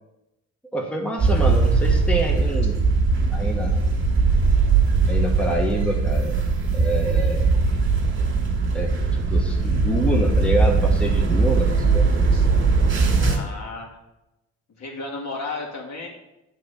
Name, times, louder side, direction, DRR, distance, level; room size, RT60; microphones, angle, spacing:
voice 1, 0.7-2.8 3.3-3.8 5.1-6.4 6.7-7.5 8.7-9.0 9.3-12.1, right 1 dB, 5° left, 1 dB, 1.0 m, -27 dB
sound 1, 1.2-13.4, right 4 dB, 40° right, 2.0 m, -20 dB
voice 2, 13.2-14.0 14.8-16.1, left 3 dB, 60° left, -2 dB, 2.5 m, -34 dB
7.7 x 4.1 x 6.8 m, 0.93 s
cardioid pair, 90°, 30 cm